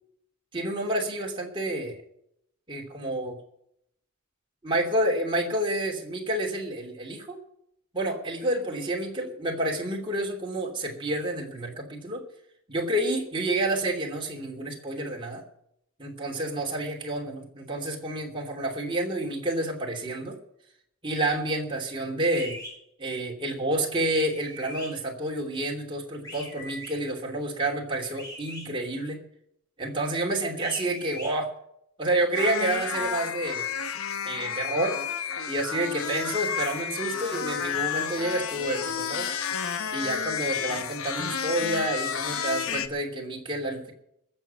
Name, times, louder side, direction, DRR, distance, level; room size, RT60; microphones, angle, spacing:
voice 1, 0.5-2.0 2.7-3.3 4.6-7.4 7.9-12.2 12.7-15.4 16.0-20.3 21.0-22.6 23.0-29.2 29.8-31.5 32.0-33.7 34.2-35.0 35.5-39.3 39.9-43.9, right 1 dB, 20° right, -1 dB, 2.9 m, -29 dB
sound 1, 22.3-22.7 24.0-24.9 26.2-26.9 28.2-28.6 30.5-31.3, left 1 dB, 15° left, 7.8 m, -40 dB
sound 2, 32.3-42.9, left 7 dB, 70° left, 1.1 m, -31 dB
21.5 x 7.4 x 5.7 m, 0.75 s
head